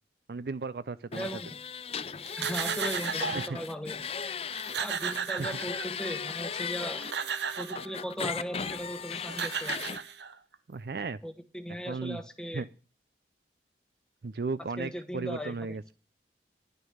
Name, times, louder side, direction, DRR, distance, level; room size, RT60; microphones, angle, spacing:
voice 1, 0.3-1.3 3.3-3.6 5.4-5.5 10.7-11.2 11.9-12.2 12.5-12.7 14.2-15.9, right 4 dB, 60° right, 15 dB, 0.5 m, -35 dB
sound 1, 1.1-4.8 5.1-7.1 7.8-10.0, left 6 dB, 35° left, 0.6 m, -37 dB
voice 2, 1.2-1.6 2.4-4.0 4.8-7.0 7.6-9.8 11.2-12.6 14.8-15.9, equal, 5° left, 9 dB, 1.1 m, -38 dB
sound 2, 2.3-3.6 4.2-4.3 4.5-6.1 6.8-7.9 9.0-9.1 9.3-10.5, right 6 dB, 80° right, 1.1 m, -34 dB
Wind instrument woodwind instrument, 4.6-10.3, right 1 dB, 15° right, 1.7 m, -54 dB
11.0 x 6.5 x 8.7 m, 0.37 s
head